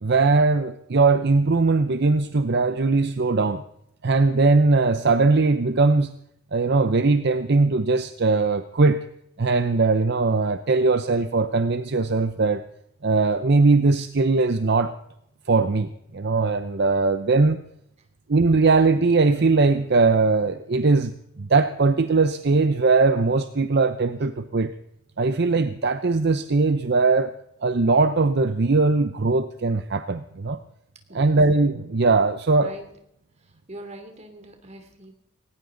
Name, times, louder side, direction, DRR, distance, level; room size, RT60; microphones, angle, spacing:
voice 1, 0.0-3.6 4.0-6.1 6.5-9.1 9.4-12.7 13.0-14.9 15.5-17.6 18.3-24.7 25.2-27.3 27.6-30.6 31.1-32.7, right 3 dB, 55° right, 10 dB, 0.7 m, -20 dB
voice 2, 32.5-32.9 33.3-35.1, right 1 dB, 35° right, 5 dB, 2.9 m, -42 dB
19.0 x 18.0 x 3.9 m, 0.76 s
head